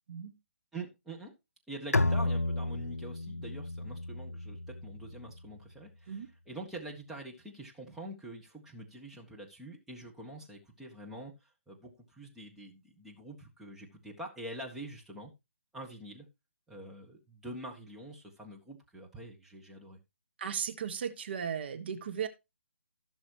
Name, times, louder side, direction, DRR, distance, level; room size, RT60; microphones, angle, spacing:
voice 1, 0.7-1.3 1.7-15.3 15.7-16.3 16.7-20.0, right 1 dB, 5° right, 1.6 m, -45 dB
Bowed string instrument, 1.9-5.4, left 2 dB, 80° left, 0.7 m, -32 dB
voice 2, 20.4-22.3, right 7 dB, 45° right, 1.3 m, -36 dB
16.5 x 6.3 x 3.0 m
figure-of-eight pair, 140°, 8 cm